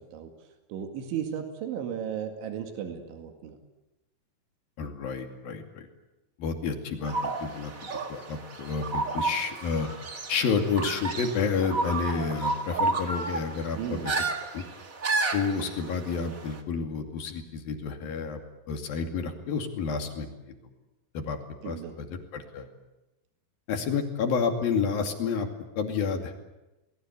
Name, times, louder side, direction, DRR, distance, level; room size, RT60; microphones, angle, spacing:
voice 1, 0.7-3.6 13.8-14.1 21.6-22.0, right 8 dB, 90° right, 5 dB, 4.5 m, -35 dB
voice 2, 4.8-5.9 6.4-9.9 10.3-14.1 14.5-14.6 15.3-18.4 18.7-20.6 21.1-21.4 21.6-22.7 23.7-25.5 25.8-26.3, left 5 dB, 55° left, 5 dB, 4.0 m, -30 dB
sound 1, 7.0-16.6, right 3 dB, 70° right, 0.7 m, -32 dB
29.5 x 21.0 x 8.2 m, 1.0 s
omnidirectional pair, 5.2 m